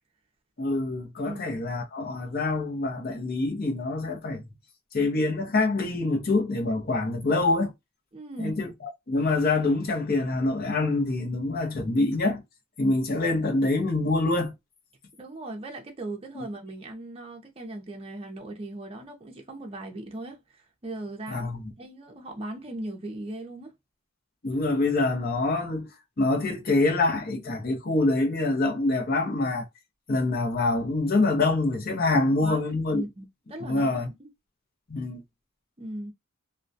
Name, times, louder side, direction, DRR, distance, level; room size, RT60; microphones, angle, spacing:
voice 1, 0.6-4.4 4.9-7.7 8.4-8.7 9.1-12.4 12.8-14.5 16.3-16.4 21.3-21.6 24.4-25.9 26.2-29.7 30.1-33.0 33.6-34.1 34.9-35.2, left 2 dB, 45° left, 0.7 m, -25 dB
voice 2, 8.1-8.6 15.2-21.5 21.8-23.7 32.4-32.6 32.9-34.3 35.8-36.1, right 1 dB, 25° right, 0.5 m, -38 dB
2.2 x 2.2 x 2.5 m
head